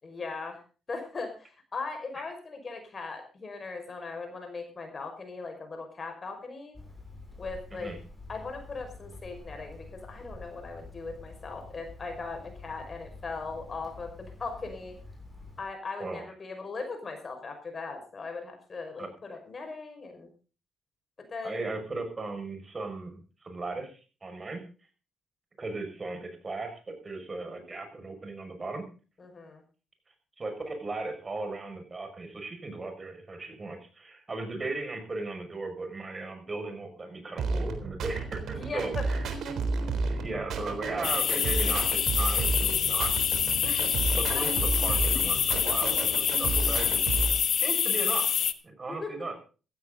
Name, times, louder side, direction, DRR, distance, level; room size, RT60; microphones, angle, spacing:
voice 1, 0.0-0.6 0.9-6.8 7.4-7.9 8.3-15.0 15.6-20.3 21.3-21.6 29.2-29.6 38.5-39.1 43.6-43.9 44.3-44.5 48.9-49.1, left 4 dB, 35° left, 5 dB, 5.6 m, -39 dB
Hammer, 6.7-15.6, left 2 dB, 5° left, 7.2 m, -47 dB
voice 2, 21.4-24.6 25.6-28.8 30.4-39.3 40.1-43.1 44.1-47.0 47.6-48.3 48.6-49.4, right 3 dB, 30° right, 6 dB, 6.1 m, -37 dB
sound 1, 37.4-47.4, right 3 dB, 70° right, 3.7 m, -31 dB
sound 2, 41.0-48.5, left 8 dB, 60° left, 1.3 m, -26 dB
15.5 x 15.0 x 4.0 m, 0.35 s
cardioid pair, 90°, 0 cm